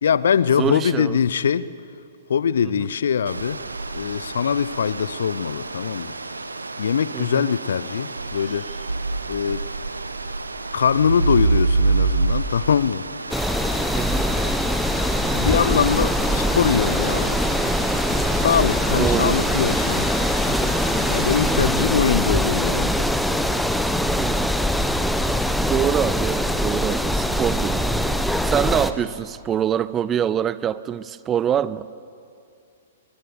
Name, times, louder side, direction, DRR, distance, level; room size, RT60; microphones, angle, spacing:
voice 1, 0.0-1.7 2.3-3.6 3.9-6.1 6.8-8.7 9.3-9.7 10.7-13.1 15.3-17.4 18.3-20.1 21.1-23.1, left 7 dB, 60° left, 18 dB, 0.7 m, -22 dB
voice 2, 0.6-1.2 2.8-2.9 7.1-7.4 13.9-14.3 18.9-19.4 21.5-21.9 24.1-24.5 25.6-28.0 28.4-31.9, right 9 dB, 20° right, 18 dB, 0.6 m, -25 dB
sound 1, 3.3-21.6, right 3 dB, 80° right, 1.3 m, -28 dB
sound 2, 13.3-28.9, equal, ahead, 1.0 m, -22 dB
23.0 x 22.5 x 7.0 m, 2.5 s
figure-of-eight pair, 110°, 0 cm